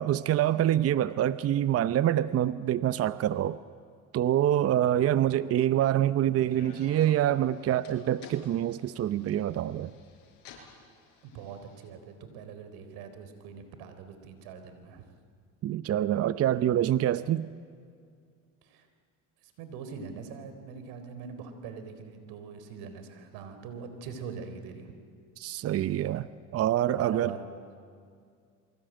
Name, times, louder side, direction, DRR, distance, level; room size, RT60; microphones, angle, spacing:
voice 1, 0.0-3.6 4.1-9.9 15.6-17.5 25.4-27.3, right 11 dB, 40° right, 15 dB, 0.7 m, -26 dB
sound 1, 6.4-11.9, left 5 dB, 65° left, 7.4 m, -52 dB
voice 2, 11.2-15.0 18.6-18.9 19.4-24.9 26.9-27.5, right 6 dB, 70° right, 8 dB, 4.0 m, -43 dB
27.0 x 23.5 x 9.0 m, 2.2 s
supercardioid pair, 105°, 38 cm